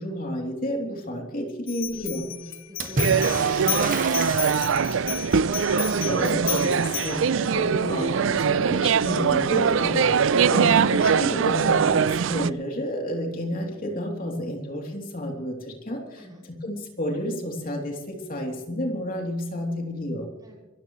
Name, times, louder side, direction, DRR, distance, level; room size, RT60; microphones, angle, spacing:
voice 1, 0.0-2.2 5.7-16.2 16.6-20.3, equal, 45° left, 1 dB, 3.1 m, -31 dB
sound 1, 1.7-7.3, left 14 dB, 65° left, 0.8 m, -33 dB
voice 2, 2.2-5.2 16.2-16.5 20.4-20.6, equal, 20° right, -3 dB, 6.2 m, -46 dB
Water / Splash splatter, 2.8-5.2 8.5-8.6 8.8-9.6 10.7-10.8, right 2 dB, 40° right, 1.8 m, -31 dB
sound 2, 3.0-12.5, right 6 dB, 65° right, 0.4 m, -22 dB
26.0 x 14.0 x 3.2 m, 1.0 s
head